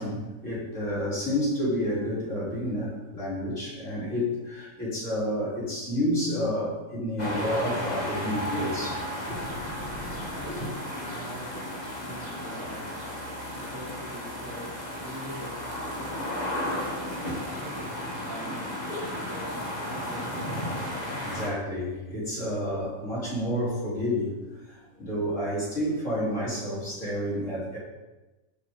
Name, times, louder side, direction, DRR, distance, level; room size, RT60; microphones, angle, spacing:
voice 1, 0.0-10.7 21.2-27.8, equal, 65° left, -7 dB, 4.5 m, -30 dB
sound 1, 7.2-21.5, left 1 dB, 30° left, 2.7 m, -34 dB
voice 2, 10.3-10.8 11.0-11.6 12.0-13.2 13.5-16.1 16.6-18.6 19.2-19.5 19.8-20.6, right 1 dB, 15° right, -7 dB, 3.7 m, -43 dB
15.0 x 7.1 x 3.9 m, 1.1 s
omnidirectional pair, 1.4 m